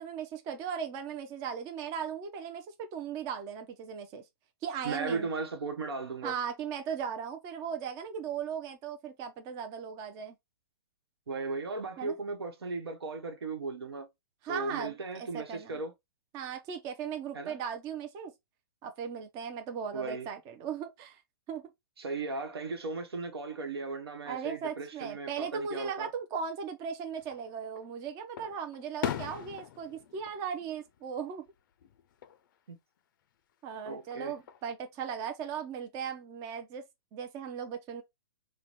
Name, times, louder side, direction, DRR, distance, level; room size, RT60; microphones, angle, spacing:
voice 1, 0.0-4.2 4.6-5.3 6.2-10.3 12.0-12.2 14.4-15.8 16.3-18.3 18.8-21.2 21.5-21.6 24.2-31.5 33.6-36.8 37.1-38.0, right 7 dB, 25° right, 0.5 m, -37 dB
voice 2, 4.8-6.3 11.3-14.1 14.5-15.9 17.3-17.6 19.9-20.3 22.0-26.1 32.7-32.8 33.8-34.3, right 3 dB, 85° right, 1.0 m, -36 dB
Fireworks, 27.2-27.9 28.4-31.5 31.8-32.4 33.9-34.7, left 10 dB, 55° left, 0.4 m, -40 dB
3.9 x 2.2 x 3.0 m
hypercardioid pair, 135°, 13 cm